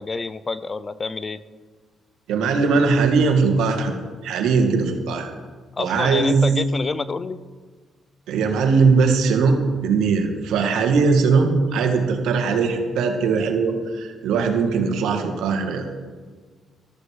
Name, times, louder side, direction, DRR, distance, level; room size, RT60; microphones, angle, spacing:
voice 1, 0.0-1.4 5.8-7.4, left 4 dB, 30° left, 16 dB, 0.6 m, -28 dB
voice 2, 2.3-4.0 4.2-5.3 5.8-6.4 8.3-15.9, right 4 dB, 85° right, 4 dB, 2.1 m, -20 dB
14.5 x 13.5 x 4.8 m, 1.5 s
cardioid pair, 90°, 0 cm